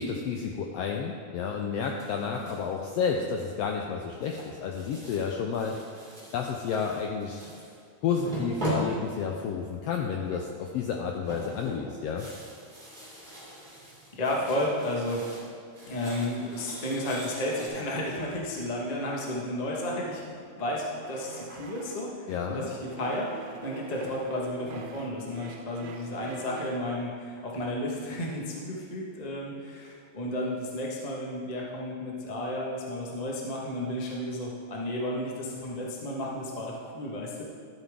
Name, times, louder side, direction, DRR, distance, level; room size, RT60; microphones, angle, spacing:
voice 1, 0.0-6.1 6.3-7.5 8.0-12.3 22.3-22.7, left 6 dB, 85° left, 2 dB, 1.4 m, -31 dB
sound 1, 1.8-2.7 3.1-3.6 4.2-7.8 8.2-9.6 10.1-10.6 10.9-15.5 15.7-17.7, right 1 dB, 15° right, 2.4 m, -40 dB
voice 2, 14.1-15.2 15.8-20.2 20.6-37.4, left 1 dB, 70° left, -3 dB, 0.4 m, -32 dB
sound 2, 18.0-22.2 22.6-27.0, right 5 dB, 80° right, 2.2 m, -47 dB
12.5 x 7.9 x 3.6 m, 2.3 s
omnidirectional pair, 3.4 m